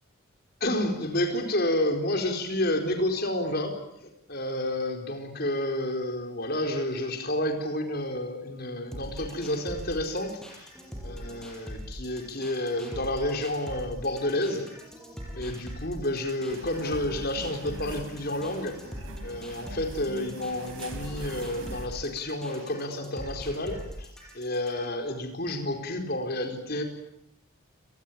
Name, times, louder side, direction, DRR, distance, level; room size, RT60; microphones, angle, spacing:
voice 1, 0.6-3.7 4.0-10.7 11.0-14.7 15.3-18.8 19.2-26.8, left 1 dB, 45° left, 4 dB, 4.5 m, -30 dB
sound 1, 8.9-24.9, equal, 5° left, 6.1 m, -41 dB
sound 2, 16.5-21.9, right 1 dB, 80° right, 3.8 m, -44 dB
29.5 x 20.0 x 8.8 m, 0.74 s
head